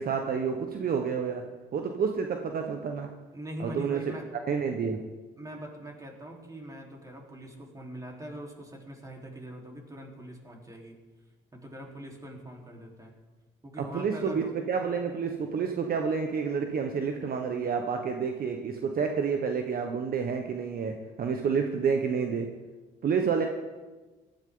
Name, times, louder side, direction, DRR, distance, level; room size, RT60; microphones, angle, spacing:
voice 1, 0.0-1.4 1.7-3.1 3.6-4.0 4.5-5.0 13.9-22.5 23.0-23.5, right 6 dB, 50° right, 4 dB, 1.3 m, -29 dB
voice 2, 3.3-4.3 5.4-11.0 11.5-13.1 13.6-14.5, right 1 dB, 20° right, -1 dB, 4.0 m, -42 dB
17.0 x 13.0 x 3.9 m, 1.3 s
supercardioid pair, 70°, 19 cm